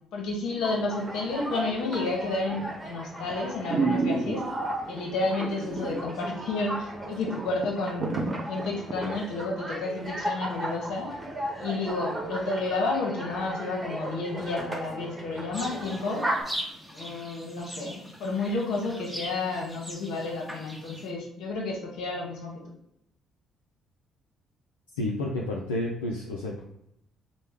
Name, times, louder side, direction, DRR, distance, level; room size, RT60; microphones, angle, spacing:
voice 1, 0.1-4.4 4.9-11.1 11.6-16.2 16.9-22.5, left 3 dB, 65° left, -1 dB, 0.9 m, -31 dB
sound 1, 0.6-16.4, right 1 dB, 25° right, 1.0 m, -36 dB
sound 2, 2.5-2.9 3.3-3.4 3.7-4.7 5.4-6.1 6.4-6.5 6.9-7.0 7.3-9.2 9.6-9.7, right 4 dB, 40° right, 0.5 m, -29 dB
sound 3, 15.5-21.1, equal, ahead, 1.0 m, -41 dB
voice 2, 24.9-26.6, left 1 dB, 85° left, -3 dB, 0.4 m, -30 dB
3.1 x 2.1 x 3.4 m, 0.76 s
hypercardioid pair, 45°, 0 cm